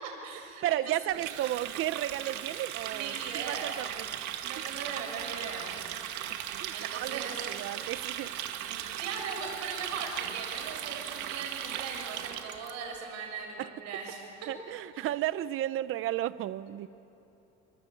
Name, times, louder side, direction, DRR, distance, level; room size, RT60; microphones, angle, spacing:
voice 1, 0.0-1.2 2.9-3.7 4.4-5.8 6.7-7.5 8.7-14.5 14.9-15.1, right 5 dB, 70° right, 1 dB, 7.0 m, -39 dB
voice 2, 0.6-4.1 6.6-7.2 7.5-8.5 13.6-13.7 14.5-16.9, right 14 dB, 45° right, 15 dB, 0.7 m, -33 dB
Water tap faucet, 1.1-12.7, right 11 dB, 85° right, 2.0 m, -37 dB
28.0 x 25.0 x 8.5 m, 2.9 s
cardioid pair, 170°, 29 cm